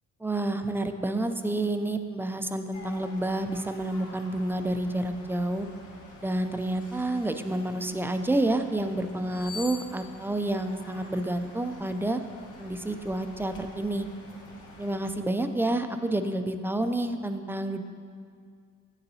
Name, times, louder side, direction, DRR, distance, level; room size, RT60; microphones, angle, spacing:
voice 1, 0.2-5.7 6.2-12.2 12.6-14.1 14.8-17.8, right 1 dB, 10° right, 8 dB, 0.3 m, -29 dB
sound 1, 2.7-15.1, left 2 dB, 80° left, 1.3 m, -49 dB
sound 2, 6.6-8.1 9.2-11.4 11.8-12.0, left 4 dB, 30° left, 0.7 m, -45 dB
8.8 x 6.8 x 2.7 m, 2.1 s
cardioid pair, 90°, 30 cm